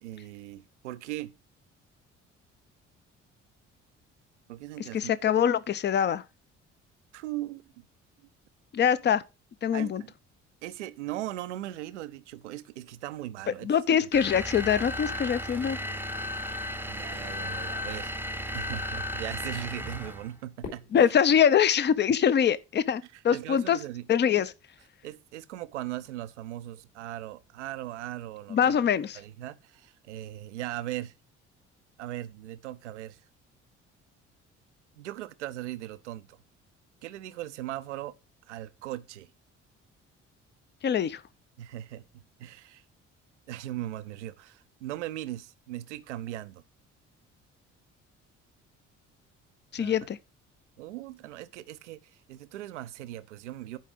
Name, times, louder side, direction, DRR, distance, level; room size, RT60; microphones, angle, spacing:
voice 1, 0.0-1.3 4.5-5.2 7.1-7.8 9.7-10.1 10.6-13.7 16.9-18.1 18.5-21.1 23.1-24.1 25.0-28.7 29.1-31.1 32.0-33.2 35.0-36.4 37.0-38.1 38.5-39.3 41.6-42.8 43.5-46.6 49.8-50.0 50.8-53.8, right 14 dB, 75° right, 0.6 m, -39 dB
voice 2, 4.9-6.2 8.7-9.2 9.6-10.0 13.6-15.8 20.9-23.8 24.1-24.5 28.5-29.2 40.8-41.2 49.7-50.2, left 8 dB, 30° left, 0.6 m, -24 dB
sound 1, 14.1-20.3, left 1 dB, 5° right, 0.8 m, -34 dB
Fireworks, 20.6-22.9, left 4 dB, 65° left, 4.0 m, -47 dB
10.0 x 5.0 x 4.9 m
figure-of-eight pair, 45°, 36 cm